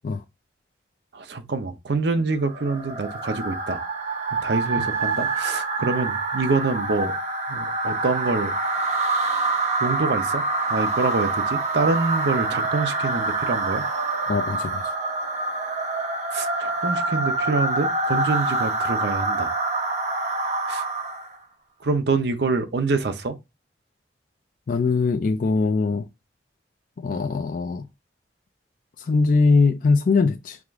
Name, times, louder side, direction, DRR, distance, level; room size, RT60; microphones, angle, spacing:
voice 1, 1.1-3.8 4.4-7.1 7.5-8.5 9.8-13.9 16.3-19.5 20.7-20.8 21.8-23.4, right 3 dB, 70° right, 0.6 m, -26 dB
sound 1, 2.4-21.3, right 3 dB, 40° right, 0.8 m, -26 dB
voice 2, 14.3-14.9 24.7-26.1 27.0-27.9 29.0-30.6, left 4 dB, 50° left, 0.3 m, -21 dB
4.8 x 2.4 x 3.5 m
head